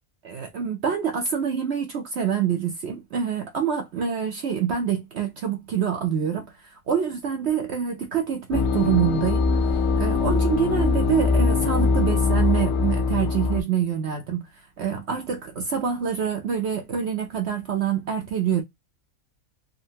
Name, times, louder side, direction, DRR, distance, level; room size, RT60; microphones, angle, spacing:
voice 1, 0.2-9.5 9.9-18.6, right 8 dB, 65° right, 0.7 m, -26 dB
sound 1, 8.5-13.6, left 4 dB, 80° left, 1.1 m, -22 dB
3.6 x 2.1 x 2.7 m
omnidirectional pair, 1.6 m